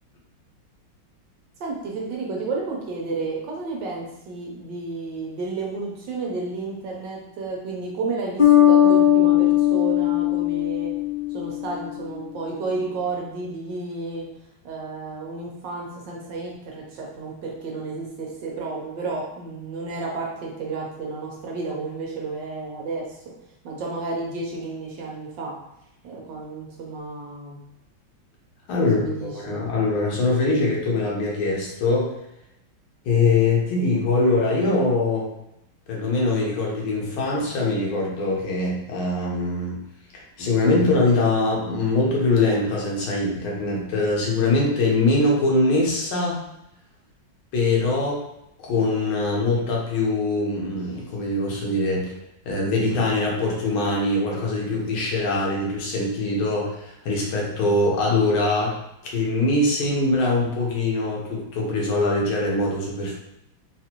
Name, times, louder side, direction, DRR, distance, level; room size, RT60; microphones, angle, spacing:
voice 1, 1.6-10.9 11.3-14.3 14.6-23.1 23.6-25.5 26.0-27.6 28.8-29.6, right 3 dB, 70° right, -2 dB, 1.2 m, -32 dB
Bass guitar, 8.4-11.9, left 11 dB, 35° left, 0.8 m, -18 dB
voice 2, 28.7-32.1 33.0-35.3 35.9-39.8 40.1-46.4 47.5-48.2 48.6-52.1 52.4-58.8 59.0-63.1, left 2 dB, 80° left, -3 dB, 1.7 m, -22 dB
4.0 x 2.5 x 2.9 m, 0.83 s
omnidirectional pair, 2.3 m